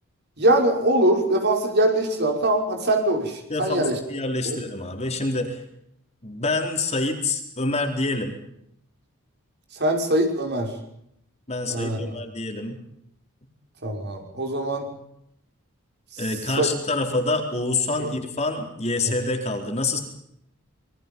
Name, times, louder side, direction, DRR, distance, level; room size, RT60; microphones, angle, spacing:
voice 1, 0.4-4.0 4.4-4.6 9.8-10.7 11.7-12.0 13.8-14.9 16.6-16.7 18.0-18.1, right 1 dB, 50° right, 3 dB, 5.9 m, -22 dB
voice 2, 3.5-5.6 6.2-8.4 11.5-12.8 16.2-20.0, left 2 dB, 30° left, 3 dB, 4.3 m, -26 dB
27.0 x 23.0 x 5.6 m, 0.75 s
head